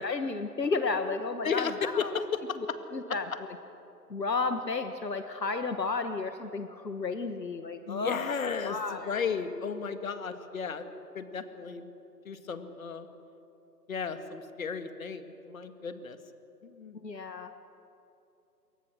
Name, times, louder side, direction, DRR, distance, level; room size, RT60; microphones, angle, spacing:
voice 1, 0.0-2.1 2.9-3.3 4.1-8.2 8.6-9.1 17.0-17.5, left 4 dB, 75° left, 8 dB, 1.6 m, -32 dB
voice 2, 1.4-2.8 3.1-3.2 7.9-10.9 11.1-11.9 12.3-13.1 13.9-16.2 16.6-17.0, left 6 dB, 55° left, 9 dB, 2.0 m, -34 dB
27.5 x 22.5 x 6.4 m, 2.9 s
figure-of-eight pair, 140°, 50 cm